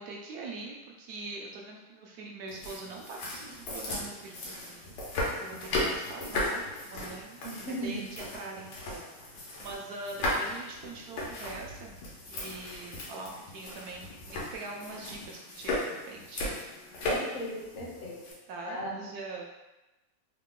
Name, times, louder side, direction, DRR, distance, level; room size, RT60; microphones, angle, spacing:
voice 1, 0.0-4.9 5.4-7.4 7.8-11.9 12.3-17.1 18.5-19.4, right 3 dB, 70° right, 0 dB, 1.0 m, -43 dB
sound 1, 2.5-18.3, left 1 dB, 90° left, 1.5 m, -36 dB
voice 2, 7.4-8.1 17.0-18.2 18.6-19.0, equal, 55° left, -2 dB, 0.7 m, -37 dB
3.7 x 2.1 x 3.6 m, 1.0 s
omnidirectional pair, 1.8 m